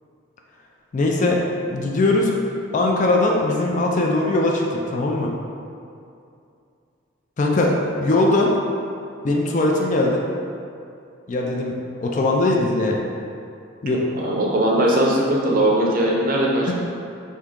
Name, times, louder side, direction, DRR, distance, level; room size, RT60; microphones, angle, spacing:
voice 1, 0.9-2.3 2.7-5.3 7.4-7.7 8.0-8.5 9.2-10.2 11.3-11.7 12.0-13.0 13.8-14.0 16.7-16.8, left 2 dB, 40° left, 0 dB, 0.3 m, -20 dB
voice 2, 14.1-16.7, right 1 dB, 45° right, -2 dB, 0.5 m, -19 dB
3.6 x 2.8 x 3.6 m, 2.5 s
head